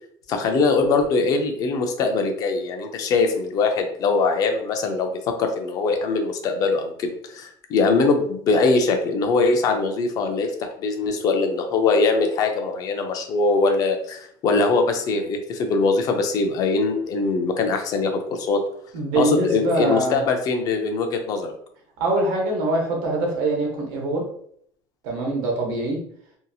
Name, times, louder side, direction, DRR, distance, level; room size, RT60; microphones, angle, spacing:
voice 1, 0.3-10.5 10.8-18.6 19.2-21.5, left 3 dB, 40° left, 5 dB, 0.4 m, -22 dB
voice 2, 18.9-20.2 22.0-24.2 25.0-26.0, right 2 dB, 85° right, 0 dB, 1.0 m, -23 dB
2.8 x 2.6 x 2.3 m, 0.66 s
cardioid pair, 170°, 10 cm